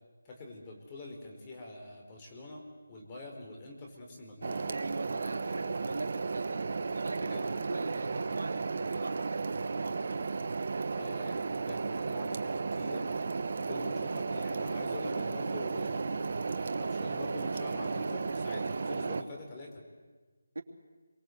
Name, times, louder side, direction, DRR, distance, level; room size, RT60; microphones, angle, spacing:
voice 1, 0.2-4.7 7.2-7.5 10.9-13.1 13.6-16.0 16.5-19.8, left 2 dB, 20° left, 0 dB, 4.2 m, -45 dB
sound 1, 4.4-19.2, right 4 dB, 50° right, 1.2 m, -34 dB
voice 2, 4.7-10.3 20.5-20.6, right 2 dB, 70° right, 2 dB, 2.9 m, -41 dB
27.5 x 24.0 x 7.9 m, 1.3 s
figure-of-eight pair, 170°, 0 cm